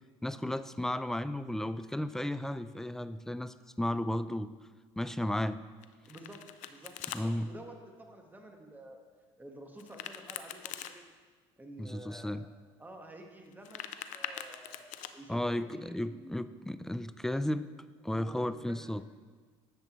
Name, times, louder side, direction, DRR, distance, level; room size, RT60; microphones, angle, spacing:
voice 1, 0.2-4.5 5.0-5.6 7.1-7.5 11.8-12.4 15.3-17.7 18.0-19.0, left 1 dB, 5° left, 13 dB, 0.3 m, -34 dB
Domestic sounds home sounds, 5.8-7.2 9.8-10.9 13.5-15.1, left 11 dB, 70° left, 0.5 m, -42 dB
voice 2, 6.1-6.4 6.7-9.0 9.4-11.1 11.6-12.4 12.8-15.4 15.6-16.5 18.0-18.9, right 1 dB, 15° right, 2 dB, 1.4 m, -50 dB
10.5 x 7.4 x 3.1 m, 1.5 s
supercardioid pair, 80°, 13 cm